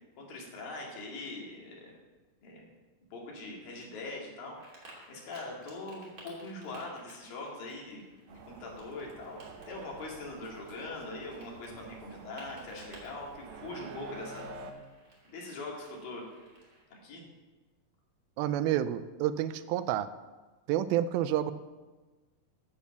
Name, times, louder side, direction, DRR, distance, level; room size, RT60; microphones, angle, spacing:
voice 1, 0.2-1.9 2.4-2.7 3.1-4.8 5.1-14.5 15.3-16.3 17.0-17.2, left 2 dB, 70° left, -2 dB, 3.9 m, -42 dB
sound 1, 4.5-16.8, right 1 dB, 25° right, 2.8 m, -56 dB
sound 2, 8.3-14.7, right 3 dB, 70° right, 1.8 m, -48 dB
voice 2, 18.4-20.1 20.7-21.5, right 12 dB, 85° right, 13 dB, 2.4 m, -29 dB
10.5 x 8.4 x 7.0 m, 1.3 s
omnidirectional pair, 4.2 m